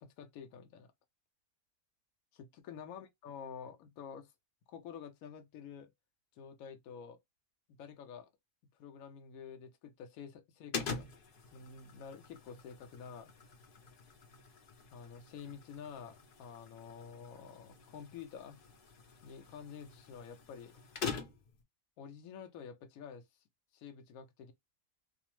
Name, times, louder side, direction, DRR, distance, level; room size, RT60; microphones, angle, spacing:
voice 1, 0.0-0.9 2.3-4.3 4.7-5.9 6.4-7.2 7.8-8.3 8.7-11.1 11.5-13.3 14.9-18.6 19.2-20.8 22.0-23.2 23.7-24.5, left 7 dB, 80° left, 1.1 m, -49 dB
sound 1, 10.7-21.6, left 5 dB, 55° left, 0.6 m, -45 dB
2.8 x 2.0 x 2.9 m
omnidirectional pair, 1.5 m